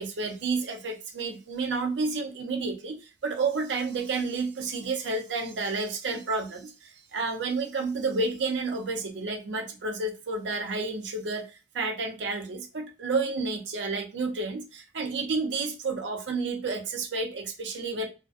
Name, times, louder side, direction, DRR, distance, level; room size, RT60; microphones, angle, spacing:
voice 1, 0.0-11.5 11.7-18.1, right 3 dB, 90° right, 0.6 m, -30 dB
2.4 x 2.1 x 2.5 m
head